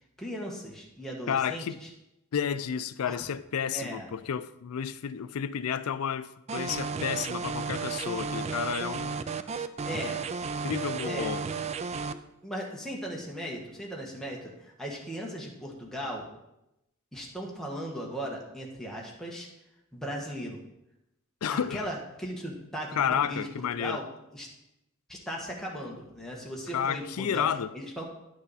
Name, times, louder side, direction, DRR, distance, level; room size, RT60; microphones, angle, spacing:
voice 1, 0.2-1.9 3.0-3.2 3.7-4.1 9.9-10.3 11.0-11.3 12.4-16.3 17.1-19.5 19.9-20.6 21.5-24.1 24.3-24.5 25.1-27.5 27.7-28.0, equal, ahead, 1.3 m, -37 dB
voice 2, 1.3-1.8 2.3-9.2 9.9-10.0 10.6-11.4 21.4-21.8 23.0-24.0 26.7-27.7, left 8 dB, 75° left, 0.4 m, -31 dB
sound 1, 6.5-12.1, right 5 dB, 30° right, 0.3 m, -33 dB
10.0 x 6.3 x 4.1 m
head